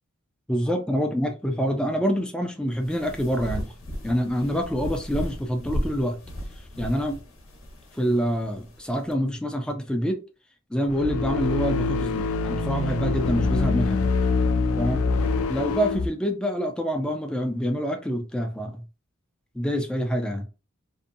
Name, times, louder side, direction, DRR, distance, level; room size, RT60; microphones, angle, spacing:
voice 1, 0.5-3.7 4.0-6.2 6.8-7.2 8.0-10.2 10.7-14.1 14.8-15.0 15.5-18.8 19.5-20.4, equal, 5° left, 0.4 m, -26 dB
sound 1, 2.7-9.1, equal, 70° left, 0.8 m, -35 dB
sound 2, 10.8-16.1, left 3 dB, 90° left, 0.4 m, -25 dB
2.7 x 2.2 x 2.6 m
head